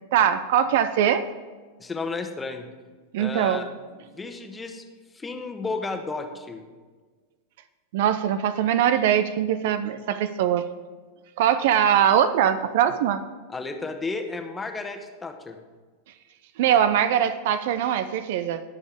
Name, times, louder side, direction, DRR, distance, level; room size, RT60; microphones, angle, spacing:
voice 1, 0.1-1.2 3.1-3.7 7.9-10.6 11.4-13.2 16.6-18.6, right 9 dB, 50° right, 13 dB, 0.5 m, -22 dB
voice 2, 1.8-2.7 3.2-3.7 4.1-4.8 5.1-6.6 13.5-15.6, left 3 dB, 10° left, 5 dB, 1.2 m, -32 dB
21.0 x 7.1 x 3.6 m, 1.4 s
figure-of-eight pair, 90°, 0 cm